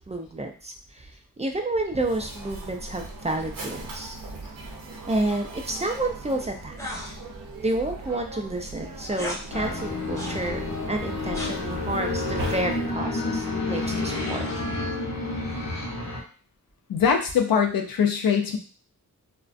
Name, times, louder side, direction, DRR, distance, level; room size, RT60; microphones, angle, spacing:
voice 1, 0.1-1.1 1.4-4.2 5.1-6.8 7.1-7.2 7.6-10.6 10.9-14.5, right 2 dB, 20° right, 3 dB, 0.3 m, -30 dB
Mechanisms, 1.9-13.1, right 2 dB, 75° right, 0.6 m, -39 dB
sound 1, 6.8-7.2 9.1-9.4 10.2-10.4 11.3-11.6 14.1-14.8, left 1 dB, 10° left, 0.7 m, -36 dB
sound 2, 9.5-16.2, left 2 dB, 55° left, 0.7 m, -30 dB
voice 2, 16.9-18.6, left 6 dB, 90° left, 4 dB, 0.5 m, -22 dB
2.4 x 2.1 x 2.4 m, 0.37 s
wide cardioid pair, 75°, 34 cm